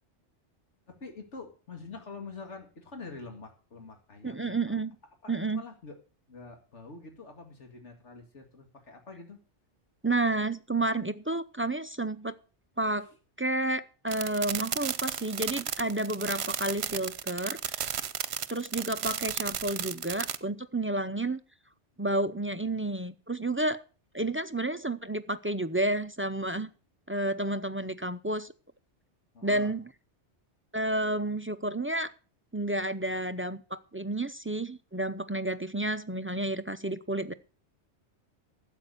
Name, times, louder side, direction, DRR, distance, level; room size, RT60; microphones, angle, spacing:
voice 1, 0.9-4.8 5.2-6.0 6.3-9.4 13.0-13.1 29.3-29.7, left 4 dB, 85° left, 2.4 m, -46 dB
voice 2, 4.2-4.9 5.3-5.6 10.0-12.4 12.8-13.1 13.4-18.0 18.5-21.4 22.0-23.8 24.1-26.7 27.1-28.5 29.4-29.9 30.7-32.1 32.5-37.3, right 2 dB, 20° right, 0.3 m, -31 dB
sound 1, 14.1-20.4, right 9 dB, 70° right, 1.0 m, -34 dB
12.5 x 8.3 x 6.6 m
omnidirectional pair, 1.2 m